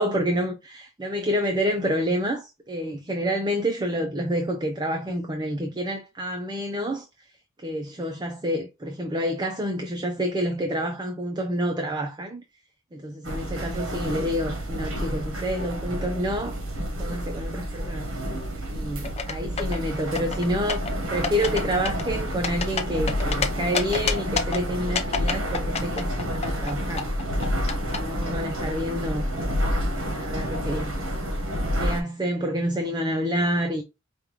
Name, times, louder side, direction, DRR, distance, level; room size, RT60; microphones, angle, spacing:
voice 1, 0.0-7.1 7.6-12.4 12.9-16.6 17.0-18.1 18.7-27.1 27.8-29.3 30.2-31.2 31.8-33.8, equal, 20° right, 0.5 m, -28 dB
sound 1, 13.2-32.0, equal, 70° right, 1.1 m, -29 dB
sound 2, 19.0-19.8 20.2-20.9 21.2-21.6 21.9-23.5 23.7-24.6 25.0-26.7 27.0-28.0, left 5 dB, 30° left, 0.6 m, -27 dB
5.1 x 2.3 x 2.9 m
head